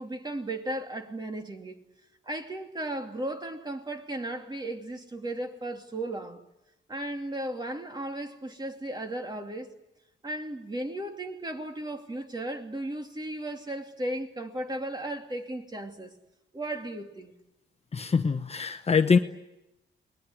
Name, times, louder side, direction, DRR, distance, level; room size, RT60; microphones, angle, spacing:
voice 1, 0.0-1.8 2.3-6.4 6.9-9.7 10.2-16.1 16.5-17.3, right 1 dB, 20° right, 2.9 m, -35 dB
voice 2, 17.9-19.2, left 5 dB, 35° left, 1.2 m, -23 dB
29.0 x 20.5 x 9.8 m
cardioid pair, 115°, 19 cm